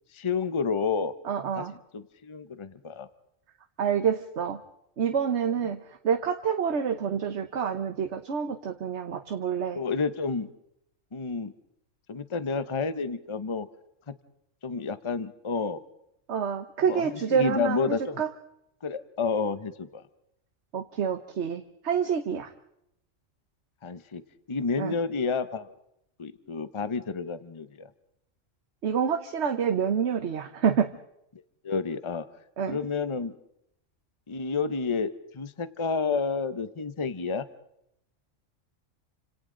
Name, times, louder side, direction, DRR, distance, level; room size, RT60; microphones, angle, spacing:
voice 1, 0.1-1.1 1.6-1.7 1.9-3.1 9.7-10.5 11.1-11.5 12.1-13.7 14.1-14.2 14.6-15.8 16.9-18.2 18.8-20.0 23.8-24.2 24.5-25.7 26.2-27.9 31.3-32.3 32.7-33.3 34.3-37.5, left 5 dB, 25° left, 12 dB, 0.8 m, -30 dB
voice 2, 1.2-1.7 3.8-4.6 5.0-9.8 16.3-18.3 20.7-22.5 24.8-24.9 28.8-30.9 32.6-32.8, right 7 dB, 60° right, 6 dB, 1.3 m, -27 dB
29.5 x 26.5 x 3.9 m, 0.80 s
omnidirectional pair, 1.3 m